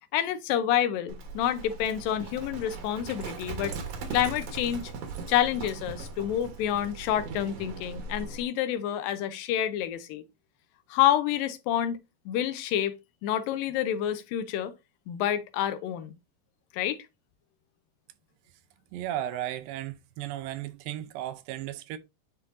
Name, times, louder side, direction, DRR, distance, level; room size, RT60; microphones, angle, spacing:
voice 1, 0.1-3.7 4.1-4.8 5.3-10.2 10.9-12.0 12.3-12.9 13.2-14.7 15.1-16.1 16.7-17.0, left 11 dB, 85° left, 2.5 m, -28 dB
Livestock farm animals working animals, 1.1-8.4, right 4 dB, 60° right, 1.9 m, -39 dB
voice 2, 18.9-22.0, right 13 dB, 85° right, 2.4 m, -35 dB
9.6 x 4.5 x 2.5 m
omnidirectional pair, 3.9 m